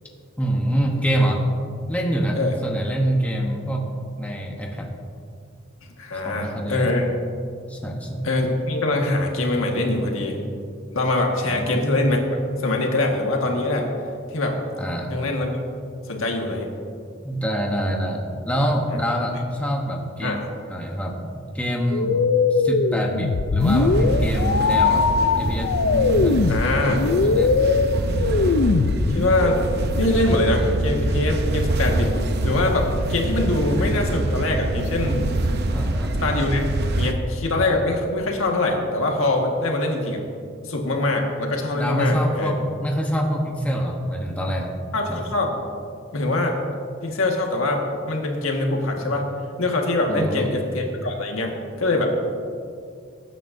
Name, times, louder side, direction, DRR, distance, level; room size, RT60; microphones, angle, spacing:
voice 1, 0.4-1.5 1.9-5.0 6.1-6.9 7.7-8.3 11.4-11.8 14.8-15.2 17.2-22.2 22.5-25.1 25.4-26.6 27.2-27.5 27.9-28.2 35.7-36.1 41.7-44.7 45.1-45.2 49.0-49.2 50.1-50.5, equal, 5° left, 0 dB, 0.9 m, -26 dB
voice 2, 6.0-7.1 8.2-10.4 10.9-12.2 12.6-13.9 14.3-14.6 15.1-15.5 16.1-16.7 18.9-19.0 20.2-20.4 26.5-27.0 29.1-29.6 30.0-32.1 32.4-35.3 36.2-36.7 36.9-40.2 40.6-42.5 44.9-45.5 46.1-46.6 47.0-49.3 49.6-52.1, left 2 dB, 80° left, 1 dB, 1.6 m, -23 dB
happy computer, 21.9-29.5, left 4 dB, 65° left, 0.5 m, -21 dB
sound 1, 23.6-37.1, right 1 dB, 50° right, 0.7 m, -24 dB
19.5 x 9.2 x 2.6 m, 2.4 s
head